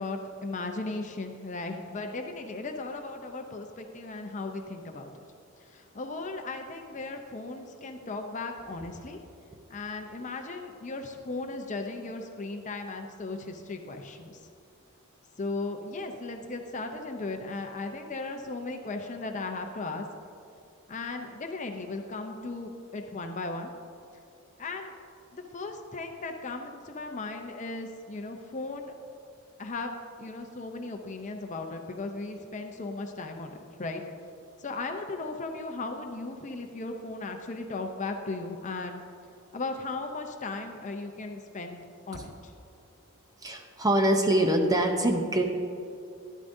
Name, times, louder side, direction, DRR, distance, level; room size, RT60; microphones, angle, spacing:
voice 1, 0.0-5.2 5.6-9.2 9.7-14.4 15.4-20.1 20.9-23.7 24.6-25.0 25.3-28.9 29.6-34.0 34.6-39.0 39.5-41.8 42.1-42.5, left 3 dB, 35° left, 4 dB, 0.6 m, -36 dB
voice 2, 43.4-45.4, right 1 dB, 15° right, 3 dB, 0.7 m, -24 dB
12.0 x 11.0 x 2.7 m, 2.5 s
head